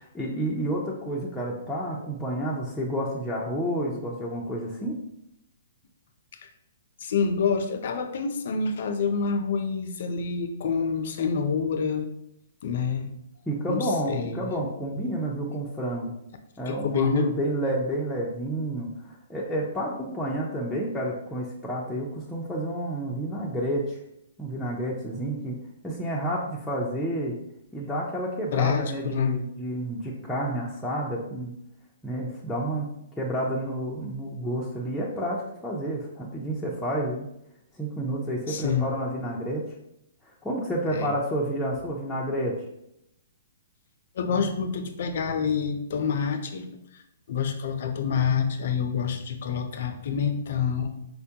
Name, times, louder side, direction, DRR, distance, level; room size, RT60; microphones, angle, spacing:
voice 1, 0.0-4.9 13.5-16.1 16.6-24.0 24.4-25.6 25.8-27.3 27.7-31.5 32.0-32.9 33.2-37.3 37.7-39.7 40.4-42.6, right 1 dB, 5° left, -6 dB, 0.4 m, -30 dB
voice 2, 7.0-12.1 12.6-13.1 13.7-14.5 16.7-17.3 28.5-29.4 38.5-39.0 40.9-41.1 44.2-46.7 46.9-47.0 47.3-50.9, left 6 dB, 60° left, 7 dB, 0.4 m, -27 dB
4.3 x 2.2 x 2.7 m, 0.79 s
hypercardioid pair, 150°, 0 cm